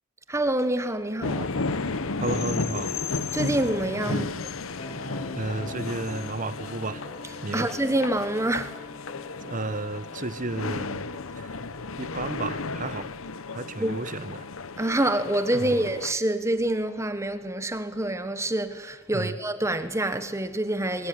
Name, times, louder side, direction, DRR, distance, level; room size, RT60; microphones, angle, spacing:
voice 1, 0.3-1.5 3.3-4.3 7.5-8.7 13.8-14.0 14.8-21.1, right 1 dB, 15° right, 1.4 m, -26 dB
sound 1, 1.2-16.1, left 3 dB, 70° left, 1.0 m, -33 dB
voice 2, 2.2-2.9 4.1-4.3 5.4-7.0 7.4-7.7 9.4-11.1 11.4-11.5 12.0-13.1 13.5-14.5 15.5-15.9 19.1-19.4, right 2 dB, 40° right, 1.1 m, -33 dB
sound 2, 4.8-12.2, left 2 dB, 35° left, 3.4 m, -43 dB
23.0 x 21.5 x 9.7 m
head